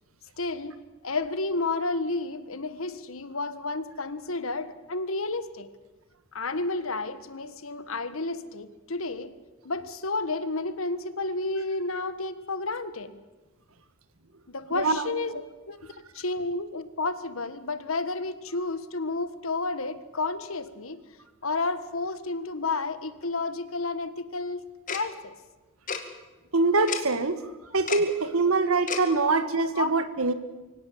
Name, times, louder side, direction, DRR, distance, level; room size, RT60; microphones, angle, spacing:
voice 1, 0.4-0.7 1.0-5.7 6.3-9.3 9.6-13.2 14.5-21.0 21.4-24.6 24.9-25.3 29.1-29.3 29.8-29.9, left 3 dB, 75° left, 12 dB, 1.5 m, -31 dB
voice 2, 14.7-15.0 26.5-27.4 27.7-30.3, right 3 dB, 85° right, 11 dB, 1.7 m, -24 dB
Tick-tock, 24.9-25.0 25.9-26.0 26.9-27.0 27.9-28.0 28.9-29.0, left 6 dB, 40° left, 2.2 m, -30 dB
24.5 x 17.5 x 8.6 m, 1.2 s
head